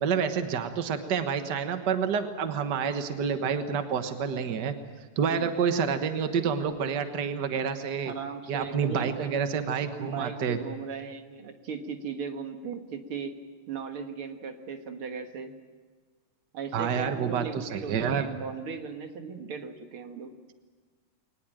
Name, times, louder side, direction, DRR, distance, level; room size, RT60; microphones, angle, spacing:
voice 1, 0.0-4.7 5.2-8.1 8.5-10.6 16.7-18.3, right 6 dB, 75° right, 8 dB, 0.9 m, -28 dB
voice 2, 8.1-9.4 10.0-13.4 13.7-15.5 16.5-20.3, right 6 dB, 50° right, 6 dB, 1.8 m, -37 dB
22.5 x 19.5 x 8.9 m, 1.5 s
omnidirectional pair, 4.0 m